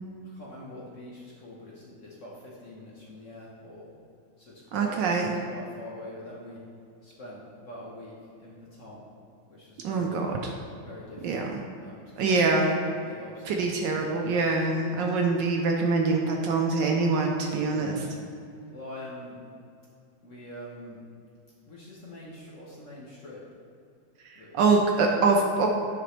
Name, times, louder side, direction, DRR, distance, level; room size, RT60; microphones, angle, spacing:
voice 1, 0.2-3.9 4.4-5.0 5.5-6.6 7.0-9.1 9.5-10.3 10.8-11.5 11.8-12.5 13.0-14.5 17.6-18.1 18.7-19.4 20.2-21.0 21.7-23.4 24.4-24.5, left 1 dB, 45° left, -5 dB, 1.2 m, -44 dB
voice 2, 4.7-5.3 9.8-10.5 11.2-11.6 12.2-12.8 13.5-18.0 24.2-25.7, right 3 dB, 70° right, 1 dB, 1.2 m, -24 dB
9.9 x 5.0 x 3.2 m, 2.5 s
omnidirectional pair, 2.3 m